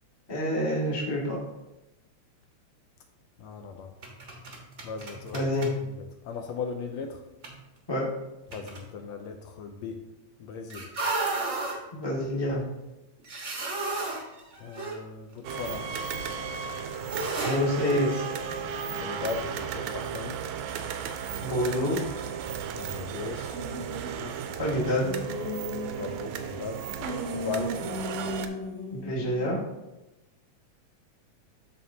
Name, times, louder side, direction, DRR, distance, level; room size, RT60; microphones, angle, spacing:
voice 1, 0.3-1.4 5.3-5.7 7.9-8.1 11.9-12.6 17.4-18.3 21.4-22.0 24.6-25.1 28.9-29.6, equal, 15° left, -6 dB, 1.0 m, -27 dB
voice 2, 3.4-3.9 4.8-5.7 6.2-7.2 8.5-10.0 10.4-10.9 14.6-15.9 19.0-20.5 22.7-24.4 26.0-26.8 27.3-27.8, left 5 dB, 75° left, 5 dB, 1.7 m, -38 dB
sound 1, 4.0-5.8 7.4-7.6 8.5-8.9 10.7-11.8 13.2-15.0 15.3-15.4 17.1-17.6, right 3 dB, 55° right, 0.8 m, -33 dB
sound 2, 15.4-28.5, right 7 dB, 90° right, 2.0 m, -35 dB
sound 3, 23.5-24.2 24.8-26.6 27.0-29.5, left 1 dB, 45° left, 2.6 m, -36 dB
13.0 x 4.3 x 2.7 m, 0.98 s
omnidirectional pair, 3.3 m